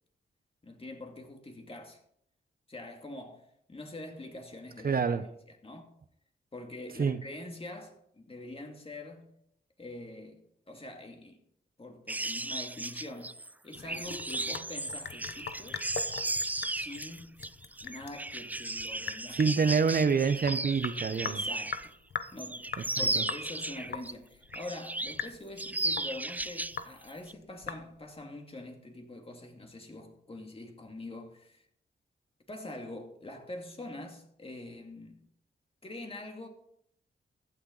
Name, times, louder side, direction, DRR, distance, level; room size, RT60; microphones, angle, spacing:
voice 1, 0.6-2.0 2.7-5.0 5.5-5.9 6.5-9.3 9.8-11.4 11.8-15.8 16.7-17.4 17.8-19.4 21.3-21.9 22.3-31.7 32.5-35.2 35.8-36.5, left 2 dB, 30° left, 2.4 m, -44 dB
voice 2, 4.8-5.2 7.0-7.2 19.3-21.4 23.0-23.2, right 5 dB, 50° right, 0.9 m, -27 dB
sound 1, 12.1-21.9 22.2-24.1 24.5-25.3 25.6-26.8 27.1-27.3, right 2 dB, 10° right, 0.3 m, -35 dB
Sink (filling or washing) / Drip, 13.7-28.2, left 6 dB, 65° left, 0.9 m, -42 dB
14.5 x 9.3 x 4.0 m
cardioid pair, 75°, 19 cm